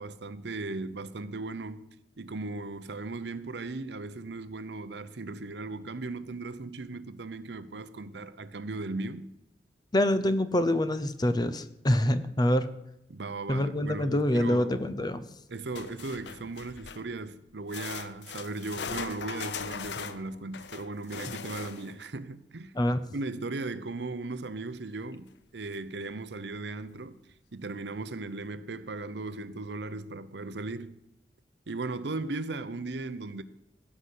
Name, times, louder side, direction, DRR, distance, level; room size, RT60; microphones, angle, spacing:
voice 1, 0.0-1.9 2.2-9.3 13.1-14.8 15.5-22.7 23.1-25.3 25.5-27.2 27.5-31.0 31.7-33.4, right 3 dB, 70° right, 0.7 m, -37 dB
voice 2, 9.9-12.7 13.5-15.2 22.7-23.0, left 1 dB, 25° left, 0.7 m, -26 dB
sound 1, 15.7-17.1 17.7-22.0 25.3-25.4 25.7-25.8 26.5-26.6, left 6 dB, 70° left, 0.7 m, -40 dB
16.5 x 5.8 x 8.3 m
head